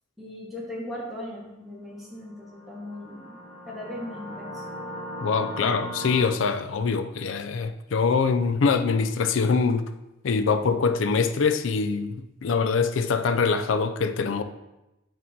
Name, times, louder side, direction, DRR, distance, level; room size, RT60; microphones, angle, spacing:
voice 1, 0.2-4.6, left 1 dB, ahead, 1.3 m, -38 dB
sound 1, 2.2-6.2, equal, 30° left, 1.1 m, -38 dB
voice 2, 5.2-9.9 10.2-14.4, left 5 dB, 85° left, 0.4 m, -24 dB
5.6 x 3.7 x 5.3 m
head